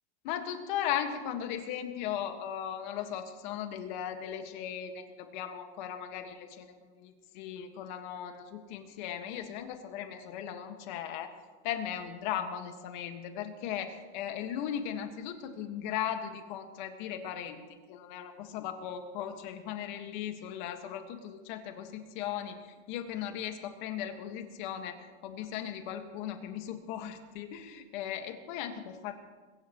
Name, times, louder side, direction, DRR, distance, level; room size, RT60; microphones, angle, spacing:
voice 1, 0.2-11.3 11.6-17.6 17.9-29.1, left 9 dB, 45° left, 6 dB, 1.7 m, -37 dB
22.5 x 20.5 x 3.1 m, 1.4 s
supercardioid pair, 175°, 33 cm